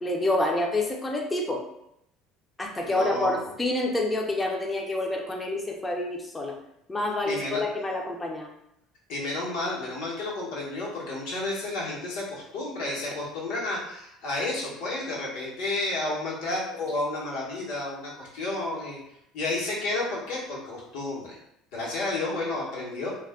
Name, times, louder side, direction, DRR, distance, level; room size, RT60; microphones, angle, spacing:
voice 1, 0.0-1.6 2.6-6.6 6.9-8.5, left 2 dB, 15° left, 1 dB, 0.4 m, -28 dB
voice 2, 2.8-3.4 7.2-7.6 9.1-19.0 19.3-21.3 21.7-23.1, left 2 dB, 80° left, -5 dB, 1.0 m, -31 dB
2.3 x 2.1 x 3.4 m, 0.79 s
cardioid pair, 145°, 0 cm